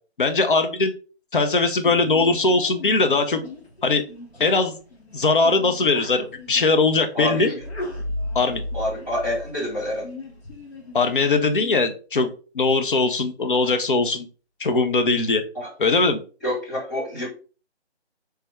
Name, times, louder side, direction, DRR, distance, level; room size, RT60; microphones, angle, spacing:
voice 1, 0.2-0.9 1.3-3.4 3.8-4.0 4.4-4.7 5.1-7.5 8.3-8.6 10.9-14.3 14.6-15.4 15.8-16.2, left 3 dB, 50° left, 7 dB, 0.5 m, -20 dB
Sneeze, 1.8-11.8, left 3 dB, 65° left, 1.0 m, -41 dB
voice 2, 7.1-7.6 8.7-10.0 15.5-15.7 16.4-17.3, equal, 15° left, -9 dB, 1.1 m, -27 dB
sound 1, 7.6-10.5, left 1 dB, 40° right, 0.6 m, -33 dB
3.3 x 2.2 x 3.0 m, 0.37 s
hypercardioid pair, 170°, 34 cm